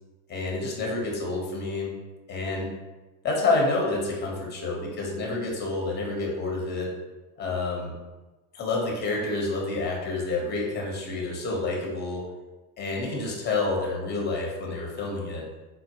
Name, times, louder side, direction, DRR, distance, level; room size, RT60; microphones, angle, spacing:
voice 1, 0.3-1.9 2.3-2.7 3.2-6.9 7.4-7.9 8.5-12.3 12.8-15.4, left 3 dB, 20° left, -1 dB, 0.8 m, -28 dB
4.3 x 2.1 x 2.8 m, 1.2 s
hypercardioid pair, 85°, 50 cm